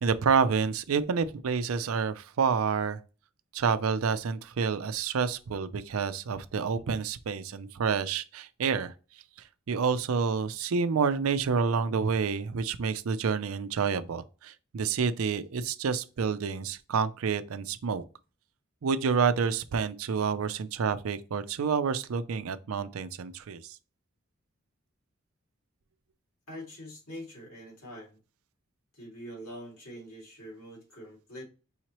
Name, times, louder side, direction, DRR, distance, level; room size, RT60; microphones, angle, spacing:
voice 1, 0.0-3.0 3.5-8.9 9.7-18.0 18.8-23.8, right 5 dB, 85° right, 0.4 m, -28 dB
voice 2, 26.5-28.2 28.9-31.4, equal, 90° left, 2.4 m, -44 dB
5.5 x 3.0 x 2.9 m
head